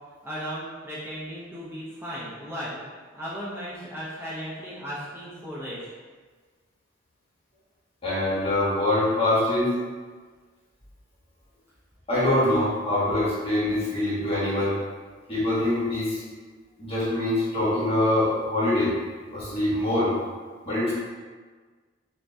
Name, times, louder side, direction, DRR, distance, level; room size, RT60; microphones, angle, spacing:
voice 1, 0.2-2.8 3.1-5.9, equal, 10° right, -9 dB, 0.6 m, -36 dB
voice 2, 8.0-9.7 12.1-14.8 15.3-16.2 16.8-19.0 19.3-20.1 20.6-20.9, left 1 dB, 30° left, -8 dB, 1.2 m, -24 dB
5.7 x 2.1 x 2.6 m, 1.5 s
head